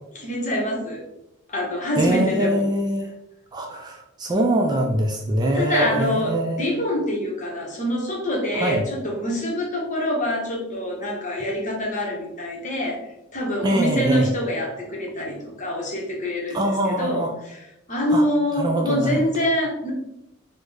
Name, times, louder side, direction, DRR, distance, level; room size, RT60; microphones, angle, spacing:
voice 1, 0.1-1.0 1.5-2.6 5.5-13.0 13.3-19.9, left 1 dB, 35° left, -1 dB, 0.8 m, -25 dB
voice 2, 2.0-3.1 3.5-6.7 8.5-8.8 13.6-14.3 16.5-17.3 18.1-18.2 18.6-19.2, right 1 dB, 20° right, 1 dB, 0.3 m, -23 dB
3.6 x 2.1 x 3.2 m, 0.84 s
head